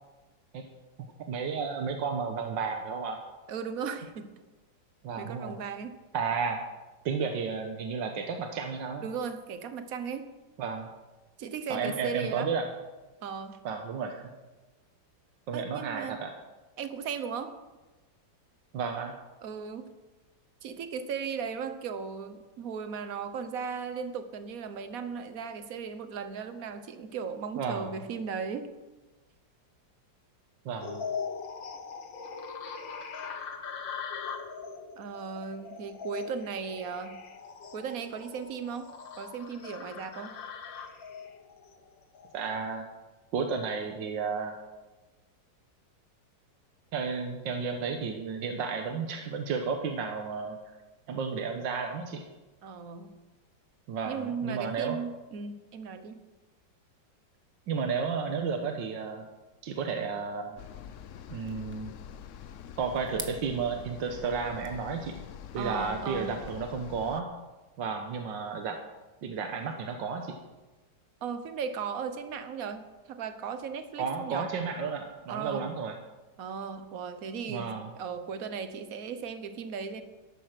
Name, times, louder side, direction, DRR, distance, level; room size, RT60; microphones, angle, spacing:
voice 1, 1.3-3.2 5.0-5.6 6.1-6.6 7.1-9.0 10.6-10.9 11.7-12.7 13.7-14.3 15.5-16.3 18.7-19.1 27.6-27.9 30.7-31.1 42.3-42.9 43.3-44.6 46.9-50.6 51.1-52.3 53.9-55.0 57.7-59.3 59.6-60.6 61.3-61.9 62.8-65.2 65.5-67.3 67.8-68.8 69.2-70.4 74.0-76.0 77.5-77.9, right 5 dB, 80° right, 4 dB, 1.8 m, -32 dB
voice 2, 3.5-4.3 5.2-5.9 9.0-10.3 11.4-12.5 13.2-13.6 15.5-16.2 16.8-17.6 19.4-19.9 20.6-28.7 35.0-37.2 37.7-38.9 39.2-40.4 52.6-53.1 54.0-56.2 65.6-66.4 71.2-74.6 75.3-75.7 76.4-80.0, right 6 dB, 55° right, 9 dB, 1.4 m, -36 dB
sound 1, 30.8-42.6, left 6 dB, 85° left, 2.0 m, -41 dB
sound 2, 60.6-67.2, left 9 dB, 70° left, 0.7 m, -45 dB
sound 3, 61.5-66.5, right 1 dB, 10° right, 1.1 m, -49 dB
13.5 x 11.5 x 6.0 m, 1.2 s
omnidirectional pair, 2.0 m